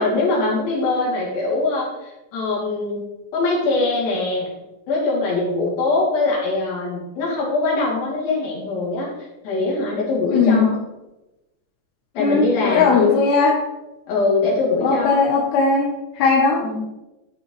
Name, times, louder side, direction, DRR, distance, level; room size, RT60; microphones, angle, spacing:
voice 1, 0.0-3.0 3.3-4.5 4.9-9.1 9.4-10.8 12.1-13.1 14.1-15.2 16.6-16.8, left 3 dB, 55° left, -5 dB, 4.6 m, -22 dB
voice 2, 10.3-10.7 12.2-13.6 14.8-16.6, left 4 dB, 70° left, -2 dB, 3.0 m, -18 dB
13.5 x 6.1 x 3.3 m, 1.0 s
omnidirectional pair, 5.3 m